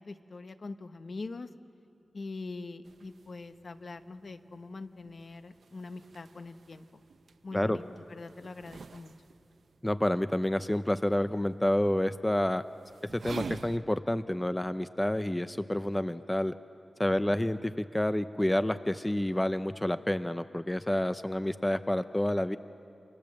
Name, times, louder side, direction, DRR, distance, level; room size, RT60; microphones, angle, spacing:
voice 1, 0.0-1.5 2.1-7.0 7.4-7.8 8.1-9.1 17.3-17.4, left 3 dB, 55° left, 9 dB, 1.0 m, -43 dB
sound 1, 2.8-13.8, right 5 dB, 80° right, 0.8 m, -48 dB
voice 2, 9.8-12.6 13.1-16.5 17.0-22.6, left 1 dB, 10° left, 11 dB, 0.5 m, -29 dB
29.5 x 26.0 x 7.6 m, 2.8 s
wide cardioid pair, 110°, 0 cm